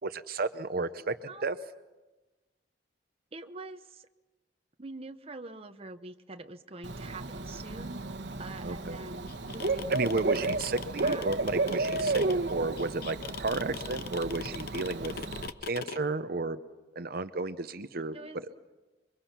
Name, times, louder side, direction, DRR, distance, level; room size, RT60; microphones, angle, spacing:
voice 1, 0.0-1.2 1.4-1.6 8.6-9.0 9.9-15.1 15.6-16.6 16.9-18.2, right 3 dB, 60° right, 11 dB, 0.8 m, -32 dB
voice 2, 1.3-1.6 3.3-4.1 4.8-8.0 8.4-10.6 10.9-11.3 18.1-18.4, right 2 dB, 35° right, 7 dB, 1.0 m, -45 dB
Bird / Cricket, 6.8-15.5, right 3 dB, 75° right, 1.3 m, -33 dB
sound 1, 9.3-16.0, left 5 dB, 60° left, 0.8 m, -40 dB
28.0 x 23.5 x 6.0 m, 1.1 s
head